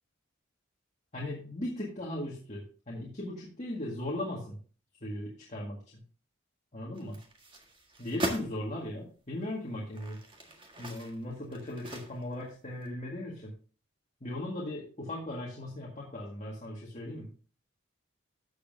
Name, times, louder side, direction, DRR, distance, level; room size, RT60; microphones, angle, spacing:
voice 1, 1.1-4.6 5.0-6.0 6.7-7.2 8.0-10.2 10.8-13.5 14.2-17.3, left 1 dB, 35° left, -4 dB, 1.9 m, -38 dB
sound 1, 6.9-8.5 9.2-9.3 9.8-12.5 12.8-12.9, right 1 dB, 25° right, 1.6 m, -40 dB
13.0 x 7.2 x 2.7 m, 0.40 s
head